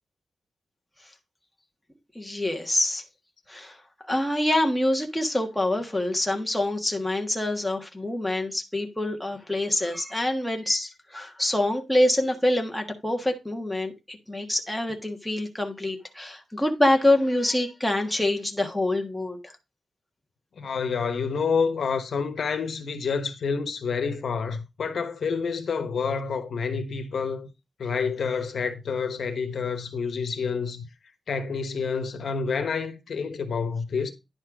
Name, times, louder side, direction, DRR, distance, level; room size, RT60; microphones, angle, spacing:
voice 1, 2.1-3.0 3.5-3.8 4.0-19.6, left 1 dB, 5° left, 1.4 m, -26 dB
voice 2, 20.6-27.5 27.8-30.9 31.3-34.1, left 5 dB, 65° left, 1.2 m, -28 dB
10.5 x 4.3 x 4.9 m
wide cardioid pair, 150°, 0 cm